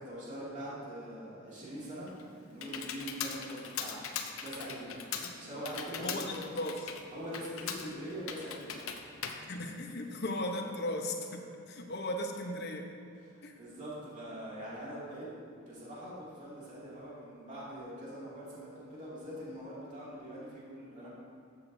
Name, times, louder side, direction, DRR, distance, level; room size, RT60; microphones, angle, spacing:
voice 1, 0.0-4.0 4.4-5.1 5.3-6.3 7.1-8.9 13.2-15.3 15.6-21.1, equal, 40° right, -8 dB, 2.5 m, -43 dB
Computer keyboard, 1.8-10.4, left 7 dB, 85° left, 0.7 m, -41 dB
voice 2, 6.0-6.9 9.5-12.9 13.4-13.6, left 1 dB, 55° left, 3 dB, 0.9 m, -37 dB
13.5 x 8.1 x 2.7 m, 2.4 s
head